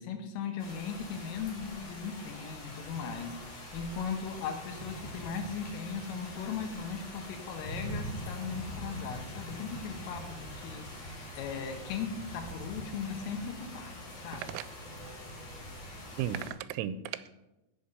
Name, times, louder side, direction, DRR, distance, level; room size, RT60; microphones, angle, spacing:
voice 1, 0.0-14.4, left 6 dB, 90° left, 5 dB, 3.8 m, -38 dB
sound 1, 0.6-16.5, equal, 55° left, 4.3 m, -43 dB
voice 2, 14.3-14.6 16.2-17.3, right 10 dB, 90° right, 15 dB, 3.2 m, -35 dB
15.5 x 5.8 x 5.5 m, 0.98 s
omnidirectional pair, 5.6 m